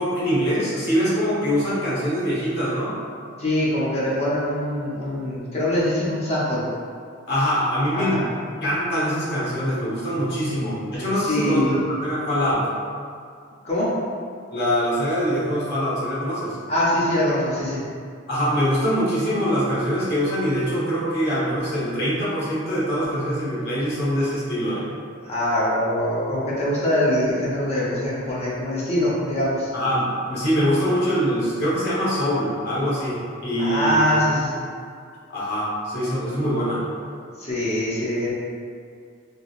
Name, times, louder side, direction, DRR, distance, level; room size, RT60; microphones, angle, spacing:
voice 1, 0.0-3.0 7.3-8.3 8.6-12.7 14.5-16.6 18.3-25.0 29.7-34.0 35.3-36.8, equal, 55° left, -8 dB, 1.0 m, -23 dB
voice 2, 3.4-6.6 7.9-8.2 11.3-11.8 13.6-13.9 16.7-17.8 25.2-29.7 33.6-34.5 37.4-38.3, left 1 dB, 30° left, -7 dB, 0.6 m, -23 dB
3.4 x 2.7 x 2.4 m, 2.2 s
head